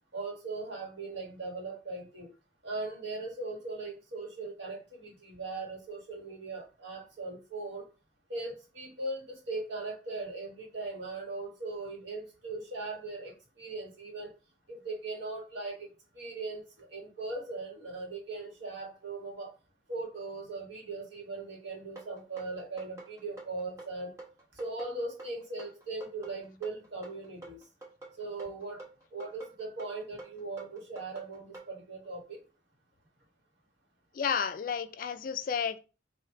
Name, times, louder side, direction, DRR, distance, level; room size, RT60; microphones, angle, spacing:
voice 1, 0.1-2.3 2.6-7.9 8.3-14.3 14.7-15.8 16.1-19.5 19.9-24.1 24.5-27.6 28.2-28.8 29.1-32.4, right 3 dB, 70° right, 1.5 m, -39 dB
sound 1, 22.0-31.7, right 2 dB, 15° right, 1.2 m, -48 dB
voice 2, 34.1-35.8, left 7 dB, 45° left, 0.3 m, -31 dB
3.5 x 2.6 x 4.6 m
head